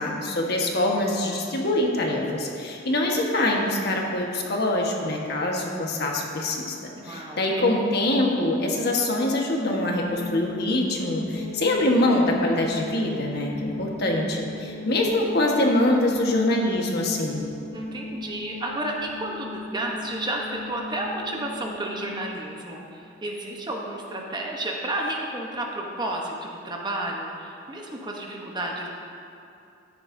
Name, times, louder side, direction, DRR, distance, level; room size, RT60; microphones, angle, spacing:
voice 1, 0.0-6.7 7.0-17.4, left 1 dB, 60° left, -1 dB, 1.3 m, -24 dB
voice 2, 7.0-7.7 17.7-28.9, right 1 dB, 25° right, 0 dB, 0.9 m, -32 dB
sound 1, 10.0-22.4, left 2 dB, 90° left, 1.3 m, -38 dB
13.0 x 9.6 x 2.7 m, 2.6 s
head